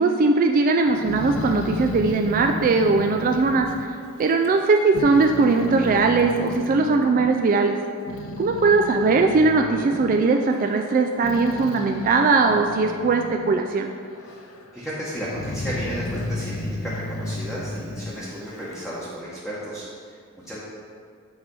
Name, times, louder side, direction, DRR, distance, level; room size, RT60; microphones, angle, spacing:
voice 1, 0.0-3.7 4.2-7.8 8.4-13.9, right 3 dB, 40° right, 4 dB, 0.3 m, -20 dB
Growling, 0.9-4.6 4.9-7.3 7.8-13.7 14.0-14.7 15.2-18.9, left 2 dB, 75° left, 0.6 m, -33 dB
voice 2, 14.7-20.6, equal, ahead, -9 dB, 1.0 m, -33 dB
7.8 x 3.3 x 5.3 m, 2.2 s
head